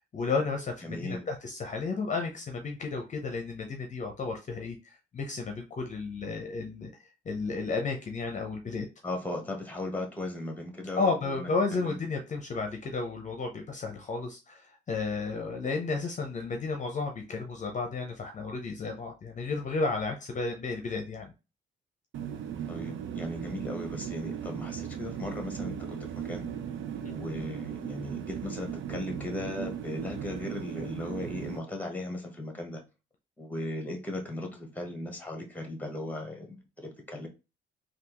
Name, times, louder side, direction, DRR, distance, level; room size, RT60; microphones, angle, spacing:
voice 1, 0.0-6.9 7.3-8.9 11.0-21.3, left 4 dB, 40° left, 0.7 m, -32 dB
voice 2, 0.8-1.3 9.0-12.0 22.7-26.0 26.2-26.5 27.1-32.8 33.4-37.3, left 1 dB, 10° left, 1.1 m, -37 dB
sound 1, 22.1-31.6, right 8 dB, 75° right, 0.5 m, -37 dB
3.4 x 2.4 x 2.9 m
cardioid pair, 90°, 20 cm